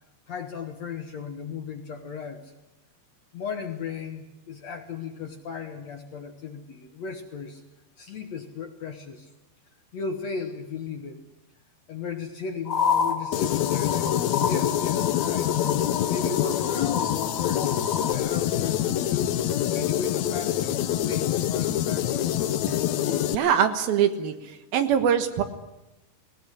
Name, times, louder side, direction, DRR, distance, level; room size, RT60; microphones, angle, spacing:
voice 1, 0.3-2.5 3.3-7.6 8.0-9.3 9.9-11.2 11.9-15.5 16.1-17.7 18.0-22.3, left 6 dB, 55° left, 5 dB, 2.1 m, -36 dB
sound 1, 12.7-18.1, left 6 dB, 35° left, 1.5 m, -30 dB
sound 2, 13.3-23.3, left 11 dB, 85° left, 1.5 m, -25 dB
voice 2, 23.3-24.3 24.7-25.4, right 8 dB, 70° right, 9 dB, 3.1 m, -22 dB
20.0 x 18.5 x 10.0 m, 0.94 s
omnidirectional pair, 4.5 m